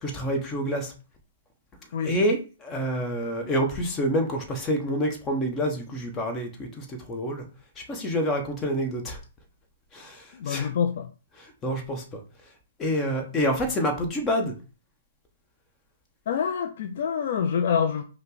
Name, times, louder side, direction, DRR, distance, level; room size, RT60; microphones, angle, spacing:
voice 1, 0.0-0.9 2.0-7.4 7.9-9.2 9.9-10.7 11.6-12.0 12.8-14.5, equal, 20° left, 1.2 m, -27 dB
voice 2, 10.4-11.1 16.3-18.0, left 7 dB, 55° left, 0.5 m, -26 dB
5.4 x 2.3 x 3.9 m
hypercardioid pair, 130°, 0 cm